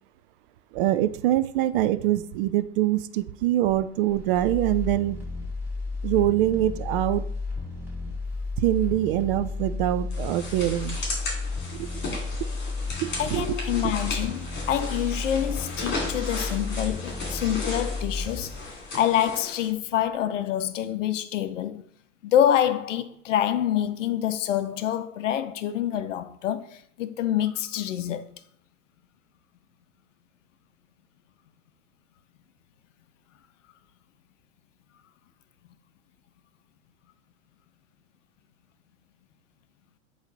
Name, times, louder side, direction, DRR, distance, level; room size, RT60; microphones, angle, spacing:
voice 1, 0.7-5.2 6.0-7.2 8.6-11.0 11.7-11.9 13.0-13.6 13.8-13.9, right 13 dB, 45° right, 0.4 m, -24 dB
sound 1, 3.6-19.7 20.1-20.2, left 3 dB, 5° right, 2.0 m, -33 dB
sound 2, 10.1-19.7, left 2 dB, 30° left, 2.7 m, -36 dB
voice 2, 13.2-18.6 18.9-21.8 22.2-28.3, left 11 dB, 75° left, 0.6 m, -26 dB
7.9 x 3.2 x 3.9 m
hypercardioid pair, 105°, 38 cm